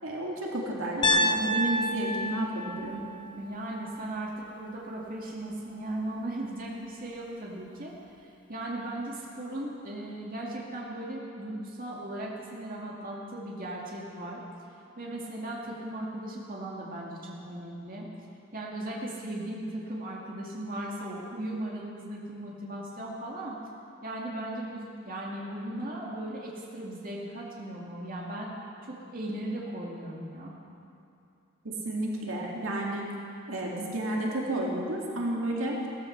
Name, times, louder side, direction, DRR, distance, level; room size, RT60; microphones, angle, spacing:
voice 1, 0.0-3.0 31.6-33.1 33.5-35.8, right 1 dB, 70° right, -2 dB, 2.3 m, -31 dB
Piano, 1.0-5.1, equal, 25° left, 0.9 m, -30 dB
voice 2, 3.3-7.9 8.2-14.4 15.0-18.1 18.5-23.6 24.0-28.5 28.8-30.5, right 1 dB, 45° right, -3 dB, 2.3 m, -37 dB
16.5 x 14.5 x 5.8 m, 2.7 s
head